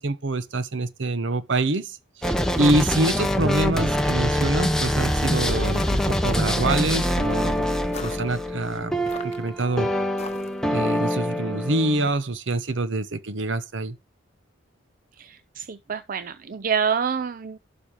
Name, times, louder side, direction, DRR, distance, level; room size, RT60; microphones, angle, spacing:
voice 1, 0.0-2.0 2.2-7.7 8.0-8.9 9.2-9.9 10.7-14.0, right 2 dB, 65° right, 0.8 m, -25 dB
sound 1, 2.2-12.1, equal, 5° left, 0.9 m, -24 dB
sound 2, 4.8-5.1 5.7-6.1 6.9-7.2 7.9-8.3 9.1-9.6 10.2-10.7, left 4 dB, 30° left, 1.0 m, -40 dB
voice 2, 15.2-17.6, right 6 dB, 45° right, 0.5 m, -27 dB
12.0 x 4.5 x 4.9 m
head